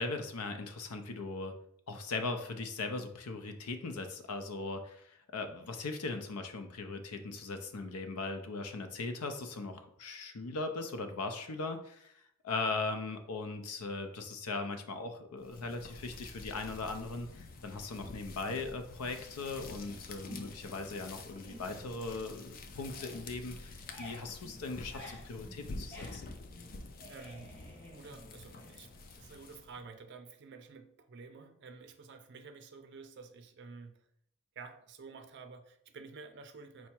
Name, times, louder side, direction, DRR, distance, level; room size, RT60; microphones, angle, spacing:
voice 1, 0.0-1.5 1.9-26.3, left 3 dB, 90° left, 7 dB, 0.6 m, -39 dB
sound 1, 15.4-29.8, left 3 dB, 40° left, 0.4 m, -48 dB
sound 2, 20.2-20.8 21.2-22.5 22.8-29.3, equal, 10° left, 1.0 m, -53 dB
voice 2, 27.1-27.6 27.9-34.1 34.6-36.9, right 4 dB, 50° right, 7 dB, 0.4 m, -50 dB
4.6 x 2.1 x 4.3 m, 0.70 s
head